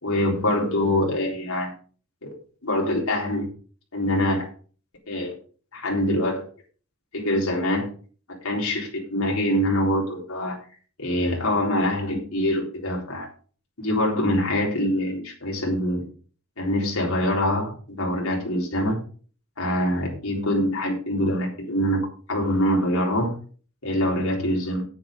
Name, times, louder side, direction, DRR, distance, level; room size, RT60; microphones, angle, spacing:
voice 1, 0.0-1.7 2.2-2.3 2.6-3.5 3.9-4.5 5.1-5.3 5.7-6.4 7.1-7.9 8.3-10.6 11.0-13.3 13.8-16.0 16.6-19.0 19.6-23.3 23.8-24.8, left 1 dB, 80° left, -2 dB, 3.9 m, -24 dB
9.6 x 9.0 x 5.3 m, 0.40 s
head